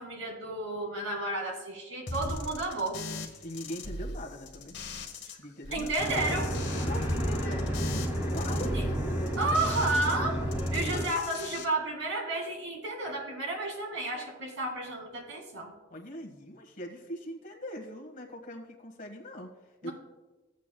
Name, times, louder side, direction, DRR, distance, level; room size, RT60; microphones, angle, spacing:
voice 1, 0.0-3.0 5.2-5.4 5.7-6.5 8.7-8.8 9.4-10.4 10.7-15.7 19.8-19.9, right 2 dB, 85° right, 1 dB, 2.2 m, -32 dB
sound 1, 2.1-5.3 5.6-10.1 10.4-11.6, left 2 dB, 60° left, 1.1 m, -39 dB
voice 2, 3.4-4.7 5.4-5.9 6.8-7.7 8.2-8.8 10.8-11.1 15.9-19.9, left 1 dB, 40° left, 0 dB, 1.5 m, -42 dB
sound 2, 6.0-11.1, equal, 10° right, 1.9 m, -31 dB
15.5 x 8.3 x 2.3 m, 1.2 s
head